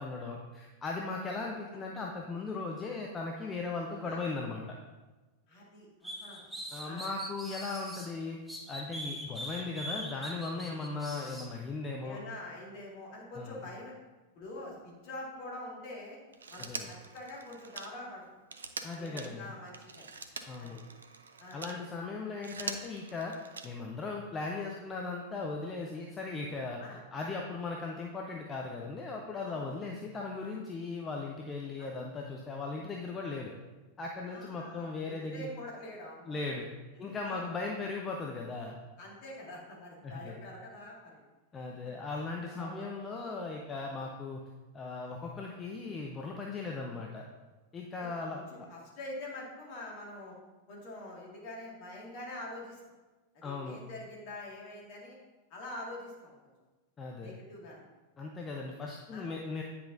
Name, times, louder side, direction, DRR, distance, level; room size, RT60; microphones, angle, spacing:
voice 1, 0.0-4.8 6.7-8.4 8.7-12.2 13.3-13.6 16.6-16.9 18.8-19.5 20.5-20.8 21.5-23.3 23.6-26.8 27.1-33.5 34.0-35.5 36.3-36.7 37.0-38.8 40.0-40.4 41.5-44.4 44.7-47.2 47.7-48.4 53.4-53.8 57.0-57.3 58.2-59.6, left 3 dB, 20° left, 0 dB, 0.7 m, -38 dB
voice 2, 5.5-6.5 6.8-7.1 12.0-13.9 14.3-16.2 16.5-18.2 18.9-20.1 20.6-20.8 21.4-21.6 26.8-27.0 29.4-29.7 31.8-31.9 34.3-36.4 36.9-37.5 39.0-41.2 41.8-41.9 42.5-42.9 48.0-50.4 50.7-52.8 53.3-55.2 55.5-56.3 57.2-57.9 58.4-58.5 59.1-59.3, left 1 dB, 45° left, -3 dB, 2.0 m, -45 dB
sound 1, 6.0-8.1 8.5-11.5, equal, 5° right, 1.0 m, -42 dB
Telephone, 16.3-21.8 22.3-24.0 25.3-25.4, right 4 dB, 70° right, 0.5 m, -44 dB
8.9 x 5.6 x 2.6 m, 1.2 s
figure-of-eight pair, 90°, 0 cm